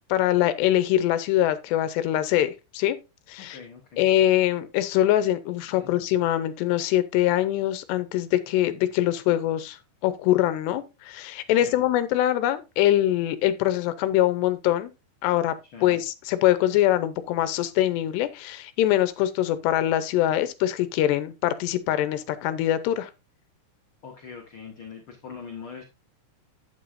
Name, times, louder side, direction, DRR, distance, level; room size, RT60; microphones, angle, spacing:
voice 1, 0.1-3.0 3.3-3.6 4.0-9.8 10.0-14.9 15.2-15.6 15.8-23.1, left 13 dB, 80° left, 2.9 m, -23 dB
voice 2, 3.4-4.1 5.7-6.1 11.5-11.9 15.7-16.0 24.0-25.8, left 6 dB, 55° left, 1.5 m, -42 dB
11.0 x 9.0 x 2.6 m
omnidirectional pair, 5.0 m